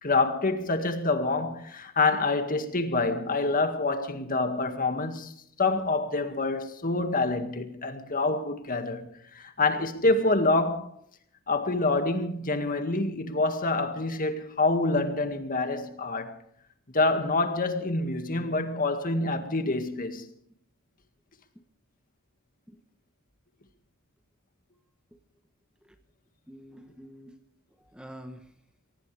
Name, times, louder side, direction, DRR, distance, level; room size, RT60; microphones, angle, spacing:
voice 1, 0.0-5.3 5.6-9.1 9.3-10.9 11.5-16.3 16.9-20.3, left 3 dB, 40° left, 1.9 m, -26 dB
voice 2, 4.1-4.6 22.7-22.8 25.1-25.2 25.8-26.0 26.5-27.4 27.8-28.5, equal, 5° right, 1.0 m, -48 dB
24.0 x 17.5 x 3.4 m
head